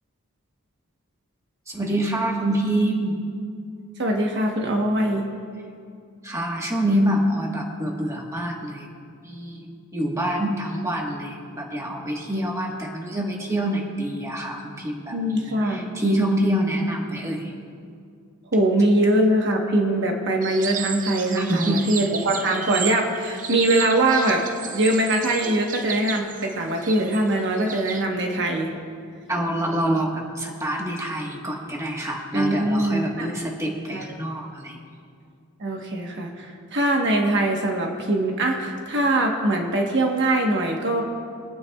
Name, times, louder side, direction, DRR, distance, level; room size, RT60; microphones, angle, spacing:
voice 1, 1.7-3.2 6.2-8.9 9.2-9.7 9.9-17.5 21.4-21.8 29.3-34.8, right 1 dB, 15° right, -1 dB, 1.3 m, -26 dB
voice 2, 4.0-5.3 15.1-15.9 18.5-24.4 24.7-28.7 32.3-33.3 33.9-34.0 35.6-41.0, right 1 dB, 55° right, 1 dB, 1.2 m, -22 dB
sound 1, 20.4-28.0, right 7 dB, 35° right, 0.6 m, -34 dB
25.0 x 9.3 x 2.3 m, 2.3 s
head